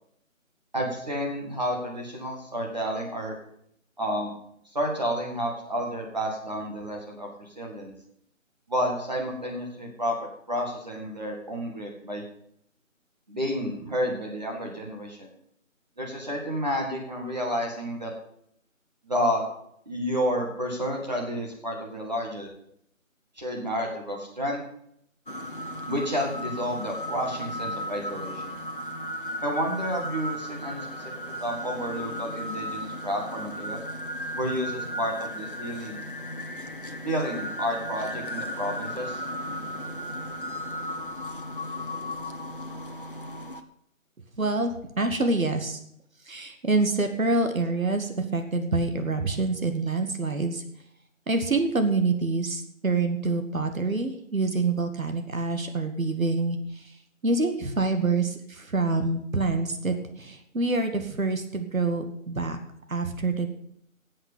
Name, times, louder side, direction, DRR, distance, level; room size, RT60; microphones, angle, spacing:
voice 1, 0.7-3.3 4.0-4.3 4.7-7.9 8.7-12.2 13.3-15.3 16.0-18.1 19.1-19.4 19.9-22.5 23.4-24.6 25.9-28.5 29.4-31.0 31.4-33.8 34.4-36.0 37.0-39.2, equal, 30° right, -1 dB, 2.0 m, -30 dB
sound 1, 25.3-43.6, equal, 40° left, 0.9 m, -35 dB
voice 2, 44.4-45.8 46.3-50.6 51.3-57.0 57.2-62.6 62.9-63.5, right 3 dB, 80° right, 6 dB, 2.1 m, -26 dB
10.5 x 7.9 x 8.5 m, 0.71 s
figure-of-eight pair, 180°, 40 cm